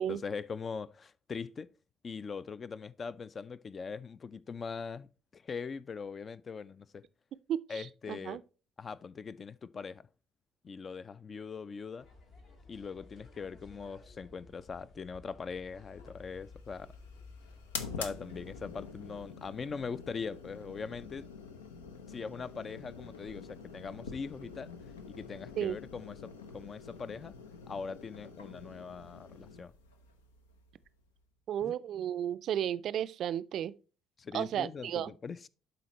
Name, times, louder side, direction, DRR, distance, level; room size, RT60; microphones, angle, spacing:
voice 1, 0.1-1.7 2.0-5.1 5.3-7.0 7.7-8.4 8.8-10.1 10.6-12.1 12.7-16.9 18.0-21.3 22.1-24.7 25.1-27.3 27.7-29.7 31.6-31.7 34.2-35.5, left 5 dB, 35° left, 0.5 m, -41 dB
voice 2, 7.5-8.4 25.6-25.8 31.5-33.7 34.3-35.1, right 10 dB, 55° right, 0.4 m, -33 dB
sound 1, 12.0-19.3, left 3 dB, 60° left, 2.2 m, -54 dB
sound 2, 15.9-31.2, left 5 dB, 80° left, 0.7 m, -47 dB
11.5 x 4.2 x 3.0 m
figure-of-eight pair, 50°, 0 cm